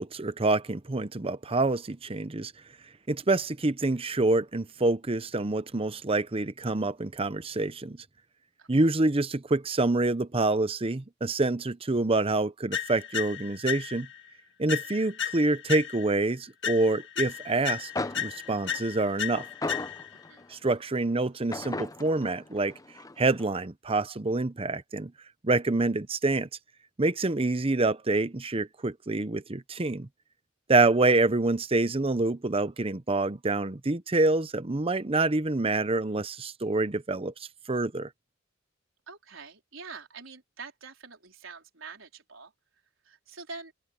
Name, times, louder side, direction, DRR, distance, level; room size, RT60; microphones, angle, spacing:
voice 1, 0.0-2.5 3.1-8.0 8.7-14.1 14.6-19.4 20.5-22.7 23.2-25.1 25.4-26.5 27.0-30.1 30.7-37.3 37.7-38.1, right 2 dB, 30° right, 0.8 m, -26 dB
sound 1, 12.7-14.2 14.7-16.2 16.6-20.2, left 9 dB, 60° left, 2.1 m, -34 dB
sound 2, 17.6-17.7 18.0-20.6 21.5-23.5, left 2 dB, 15° left, 0.8 m, -37 dB
voice 2, 20.1-20.4 39.1-42.5 43.0-43.7, right 4 dB, 75° right, 4.3 m, -45 dB
open air
head